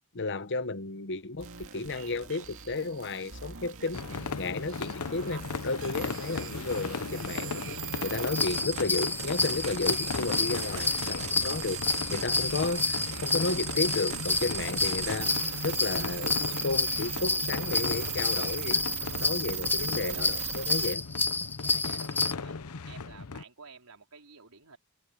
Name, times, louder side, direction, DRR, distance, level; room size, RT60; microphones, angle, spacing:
voice 1, 0.1-4.0 4.4-7.6 8.0-11.8 12.1-15.3 15.6-18.8 19.2-21.0, left 3 dB, 55° left, 1.0 m, -33 dB
sound 1, 1.4-20.9, right 10 dB, 65° right, 2.3 m, -39 dB
sound 2, 3.9-23.4, left 4 dB, 80° left, 0.9 m, -37 dB
sound 3, 8.3-22.3, left 3 dB, 10° left, 0.4 m, -30 dB
voice 2, 21.6-22.6 22.8-24.8, right 5 dB, 80° right, 4.6 m, -51 dB
head